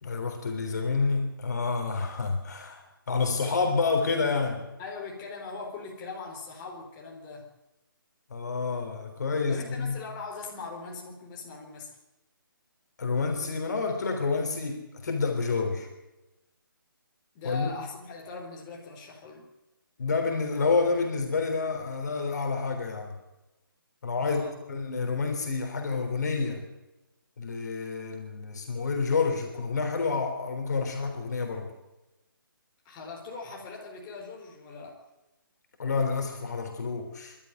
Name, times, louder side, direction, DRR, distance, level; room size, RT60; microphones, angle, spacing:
voice 1, 0.0-4.6 8.3-10.0 13.0-15.9 17.4-17.7 20.0-23.1 24.0-24.4 24.7-26.6 27.4-31.7 35.8-37.4, left 4 dB, 50° left, 4 dB, 3.6 m, -28 dB
voice 2, 4.8-7.5 9.5-12.0 17.3-19.5 24.2-24.6 32.8-35.0, left 4 dB, 20° left, -1 dB, 4.1 m, -40 dB
24.0 x 13.0 x 9.2 m, 1.0 s
figure-of-eight pair, 145°, 12 cm